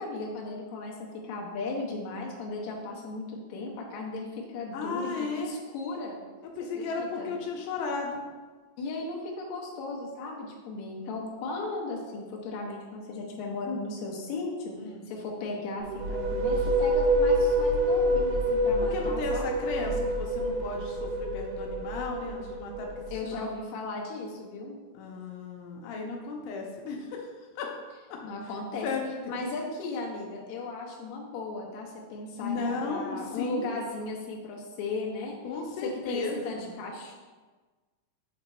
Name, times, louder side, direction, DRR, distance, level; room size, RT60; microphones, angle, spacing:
voice 1, 0.0-6.2 6.7-7.3 8.8-14.8 15.1-19.5 23.1-24.7 28.2-28.9 29.3-35.4 35.8-37.1, left 3 dB, 65° left, -2 dB, 2.1 m, -36 dB
voice 2, 4.7-5.5 6.6-8.2 14.8-15.1 18.9-22.9 23.2-23.4 24.9-27.3 27.6-27.7 28.1-28.2 28.8-29.0 32.4-33.8 35.4-36.7, left 4 dB, 90° left, 0 dB, 2.3 m, -35 dB
sound 1, 15.8-23.4, equal, 80° right, 1.5 m, -27 dB
7.9 x 2.9 x 4.3 m, 1.4 s
omnidirectional pair, 3.8 m